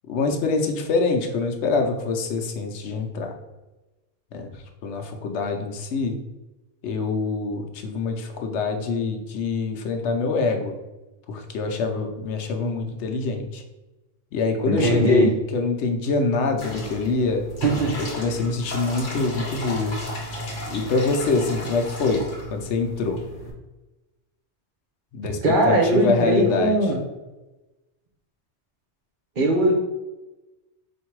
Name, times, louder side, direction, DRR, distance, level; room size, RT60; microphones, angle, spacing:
voice 1, 0.1-3.3 4.3-4.5 4.8-6.2 6.8-10.8 11.3-13.6 14.3-17.4 18.1-20.0 20.7-22.2 22.5-23.2 25.1-25.4 25.6-26.8, left 3 dB, 85° left, 4 dB, 0.9 m, -25 dB
voice 2, 14.7-15.3 17.6-18.3 25.4-27.0 29.4-29.8, right 1 dB, 50° right, 0 dB, 0.9 m, -20 dB
sound 1, 16.6-23.5, equal, 50° left, 0.9 m, -35 dB
3.6 x 2.6 x 4.5 m, 1.1 s
omnidirectional pair, 1.1 m